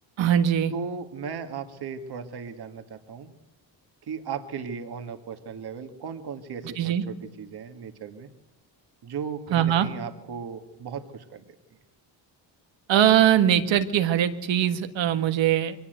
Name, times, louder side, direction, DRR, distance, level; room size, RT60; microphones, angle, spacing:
voice 1, 0.2-0.7 6.8-7.0 9.5-9.9 12.9-15.7, right 10 dB, 75° right, 9 dB, 1.7 m, -21 dB
voice 2, 0.7-3.3 4.0-8.3 9.0-11.4, right 6 dB, 60° right, 6 dB, 2.1 m, -36 dB
23.0 x 18.5 x 8.1 m, 0.89 s
cardioid pair, 105°, 45 cm